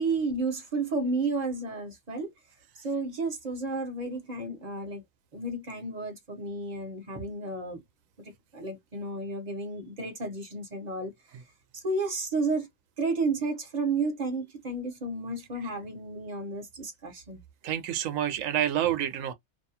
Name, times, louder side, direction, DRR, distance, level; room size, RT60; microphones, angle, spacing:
voice 1, 0.0-2.3 2.8-5.0 5.3-7.8 8.2-11.1 11.7-12.7 13.0-17.4, right 3 dB, 40° right, 0.8 m, -32 dB
voice 2, 17.6-19.3, right 11 dB, 80° right, 1.0 m, -28 dB
2.7 x 2.3 x 2.7 m
omnidirectional pair, 1.4 m